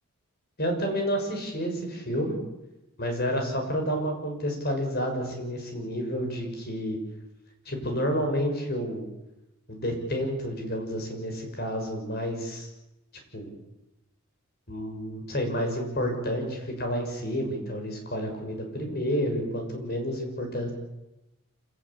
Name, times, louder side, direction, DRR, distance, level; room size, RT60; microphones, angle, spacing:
voice 1, 0.6-2.4 3.0-7.0 7.6-9.1 9.7-12.7 13.3-13.5 14.7-20.7, equal, 45° left, 3 dB, 6.6 m, -30 dB
26.5 x 17.5 x 8.7 m, 0.94 s
head